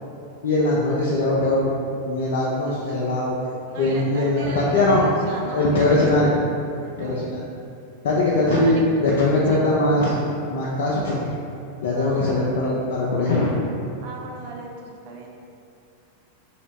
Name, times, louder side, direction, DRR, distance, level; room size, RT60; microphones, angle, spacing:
voice 1, 0.4-1.7 2.0-3.4 3.8-5.0 5.5-6.3 7.0-7.4 8.0-10.2 10.5-11.2 11.8-13.5, left 2 dB, 55° left, -5 dB, 0.4 m, -21 dB
voice 2, 3.7-6.0 6.8-7.2 8.5-8.8 9.5-9.6 11.9-12.6 14.0-15.3, right 3 dB, 50° right, -1 dB, 0.5 m, -37 dB
3.0 x 2.7 x 3.2 m, 2.6 s
figure-of-eight pair, 90°, 0 cm